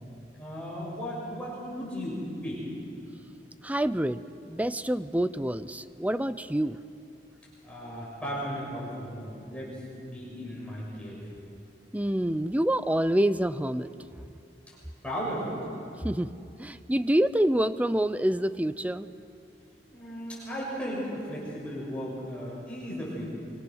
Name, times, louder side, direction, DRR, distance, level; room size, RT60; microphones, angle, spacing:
voice 1, 0.4-2.6 7.6-11.3 15.0-15.6 19.9-23.3, equal, 5° left, -6 dB, 6.6 m, -36 dB
voice 2, 3.6-6.8 11.9-13.9 16.0-16.3 16.6-19.1, right 1 dB, 10° right, 14 dB, 0.5 m, -27 dB
25.5 x 24.5 x 6.3 m, 2.6 s
head